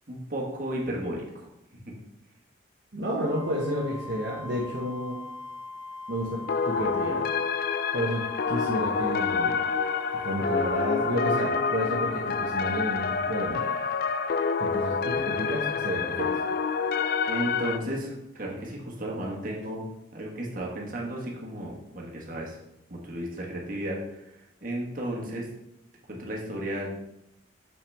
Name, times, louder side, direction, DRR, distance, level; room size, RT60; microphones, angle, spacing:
voice 1, 0.1-1.5 1.8-1.9 17.3-19.8 20.1-22.6 22.9-25.5 26.1-27.0, right 1 dB, 45° right, -2 dB, 1.5 m, -34 dB
voice 2, 2.9-5.2 6.1-7.2 7.9-9.6 10.2-14.0 14.6-16.4, equal, 60° right, -4 dB, 1.0 m, -31 dB
Wind instrument woodwind instrument, 3.2-11.8, left 3 dB, 5° left, 2.4 m, -42 dB
sound 1, 6.5-17.8, left 5 dB, 50° left, 0.3 m, -27 dB
6.8 x 5.8 x 3.5 m, 0.86 s
head